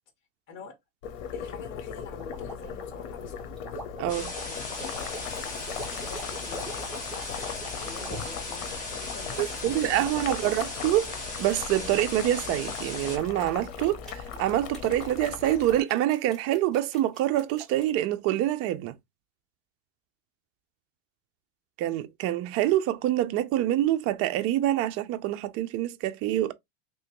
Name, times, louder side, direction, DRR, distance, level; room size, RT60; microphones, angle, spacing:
Boiling, 1.0-15.8, left 7 dB, 85° left, 0.9 m, -38 dB
voice 1, 1.3-3.8 4.4-5.5 5.8-7.0 7.7-10.8, left 4 dB, 45° left, 1.6 m, -46 dB
sound 1, 2.2-8.4 9.0-10.3 11.5-12.0 12.4-17.9, right 1 dB, ahead, 1.8 m, -44 dB
voice 2, 4.0-4.3 9.4-11.1 11.4-18.9 21.8-26.5, right 13 dB, 40° right, 0.5 m, -26 dB
sound 2, 4.1-13.2, left 2 dB, 20° left, 1.6 m, -37 dB
3.3 x 2.9 x 3.0 m
supercardioid pair, 130°, 38 cm